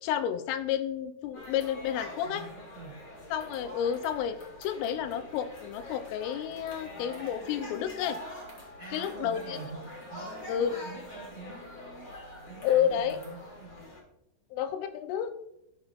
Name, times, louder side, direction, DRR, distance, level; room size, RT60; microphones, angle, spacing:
voice 1, 0.0-2.5 3.3-8.2 8.9-9.6 10.5-10.8 12.6-13.2 14.5-15.3, left 9 dB, 85° left, 9 dB, 2.9 m, -30 dB
sound 1, 1.3-14.0, left 1 dB, 65° left, 1.2 m, -45 dB
voice 2, 2.2-3.0 8.8-12.1 12.5-13.8, right 4 dB, 80° right, -5 dB, 1.4 m, -46 dB
Wind instrument woodwind instrument, 6.0-13.4, right 2 dB, 35° right, 2.3 m, -55 dB
13.5 x 6.3 x 2.4 m, 0.81 s
omnidirectional pair, 5.7 m